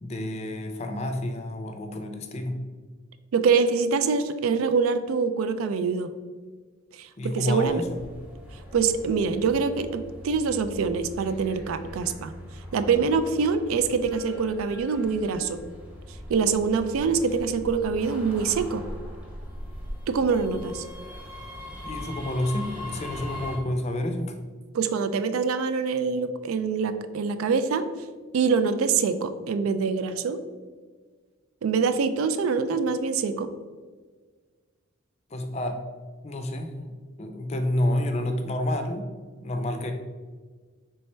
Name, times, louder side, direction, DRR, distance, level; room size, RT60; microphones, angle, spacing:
voice 1, 0.0-2.6 7.2-8.0 21.8-24.3 35.3-35.8 36.2-39.1 39.4-39.9, left 1 dB, 30° left, 6 dB, 0.4 m, -29 dB
voice 2, 3.3-6.1 6.9-7.8 8.7-12.3 12.7-15.6 16.3-18.8 20.1-20.8 24.7-27.8 28.3-30.4 31.6-33.5, right 5 dB, 90° right, 10 dB, 0.3 m, -25 dB
sound 1, 7.6-23.6, left 1 dB, 5° right, 0.8 m, -40 dB
4.3 x 3.3 x 3.2 m, 1.5 s
head